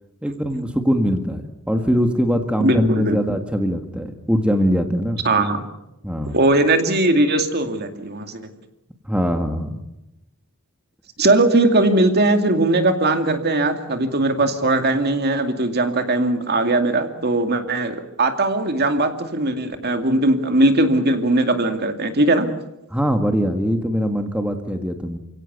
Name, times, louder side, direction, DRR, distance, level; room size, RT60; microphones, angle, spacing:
voice 1, 0.2-5.2 6.0-6.4 9.1-9.8 22.9-25.2, equal, 5° right, 5 dB, 1.6 m, -22 dB
voice 2, 2.6-3.2 5.2-5.7 6.3-8.4 11.2-22.5, right 2 dB, 50° right, 7 dB, 2.4 m, -19 dB
29.0 x 17.0 x 8.1 m, 0.91 s
head